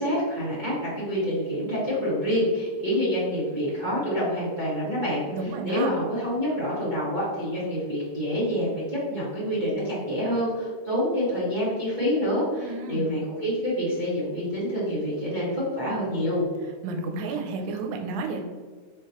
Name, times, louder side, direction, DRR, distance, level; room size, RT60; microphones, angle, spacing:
voice 1, 0.0-16.4, equal, 30° right, -11 dB, 0.9 m, -27 dB
voice 2, 5.3-5.9 12.6-13.1 16.8-18.4, right 3 dB, 85° right, 3 dB, 2.0 m, -31 dB
4.5 x 3.7 x 3.0 m, 1.5 s
omnidirectional pair, 3.3 m